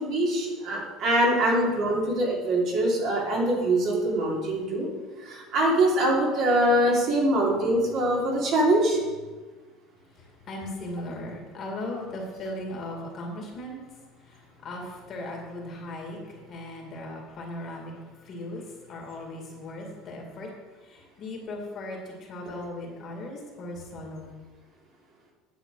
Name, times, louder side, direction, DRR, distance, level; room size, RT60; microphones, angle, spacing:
voice 1, 0.0-4.9 5.2-9.0, right 1 dB, 45° right, -3 dB, 2.9 m, -23 dB
voice 2, 10.2-13.8 14.2-20.5 20.8-24.4, left 1 dB, 35° left, 0 dB, 2.2 m, -38 dB
10.0 x 7.4 x 4.8 m, 1.3 s
cardioid pair, 155°, 0 cm